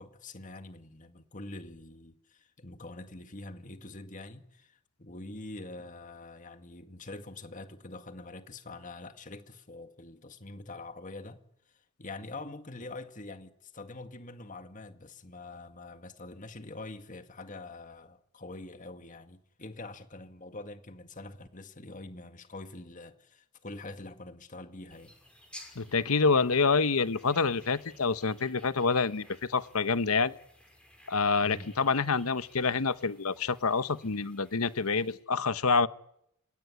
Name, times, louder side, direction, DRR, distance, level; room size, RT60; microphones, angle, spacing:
voice 1, 0.0-11.4 12.0-25.1 31.4-31.7, left 2 dB, 35° left, 1.9 m, -45 dB
sound 1, 24.9-35.2, left 1 dB, 5° left, 5.9 m, -56 dB
voice 2, 25.8-30.3 31.1-35.9, left 4 dB, 80° left, 1.0 m, -27 dB
28.5 x 17.5 x 9.7 m
head